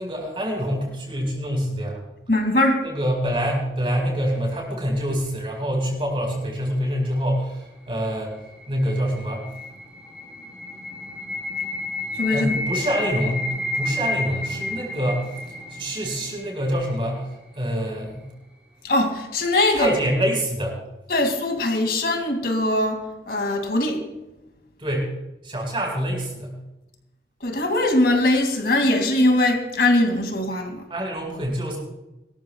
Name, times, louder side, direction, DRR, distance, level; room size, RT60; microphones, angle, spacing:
voice 1, 0.0-2.0 2.8-8.4 8.7-9.5 12.3-18.3 19.7-20.8 24.8-25.1 25.4-26.6 30.9-31.8, equal, 30° right, 0 dB, 5.0 m, -26 dB
voice 2, 2.3-2.8 12.1-12.6 18.8-19.9 21.1-24.0 27.4-30.9, left 1 dB, 60° left, 4 dB, 2.5 m, -21 dB
sound 1, 8.1-17.1, left 2 dB, 5° right, 3.5 m, -31 dB
23.5 x 13.5 x 2.4 m, 0.99 s
head